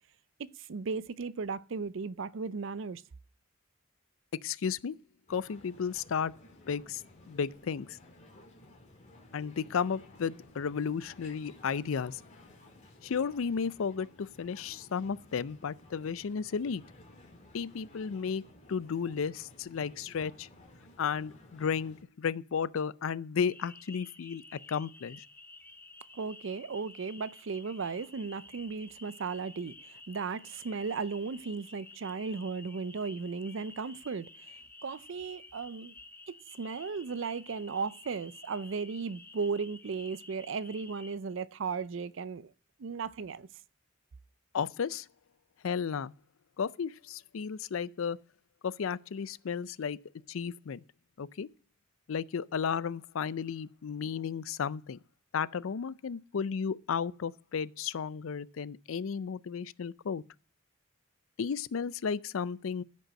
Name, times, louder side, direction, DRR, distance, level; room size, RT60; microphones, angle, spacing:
voice 1, 0.7-3.0 26.1-34.3 34.8-35.9 36.3-42.5 42.8-43.5, right 5 dB, 65° right, 0.5 m, -36 dB
voice 2, 4.4-5.0 5.3-6.3 6.7-8.0 9.3-12.2 13.0-16.8 17.5-18.4 18.7-20.5 21.0-24.4 24.7-25.2 44.5-45.1 45.6-46.1 46.6-48.2 48.6-50.0 50.3-50.8 51.2-51.5 52.1-55.0 55.3-60.2 61.4-62.8, left 6 dB, 75° left, 0.4 m, -33 dB
sound 1, 5.3-22.0, left 2 dB, 35° left, 2.3 m, -56 dB
sound 2, 23.4-41.2, left 3 dB, 10° left, 0.6 m, -52 dB
14.0 x 5.4 x 6.4 m
head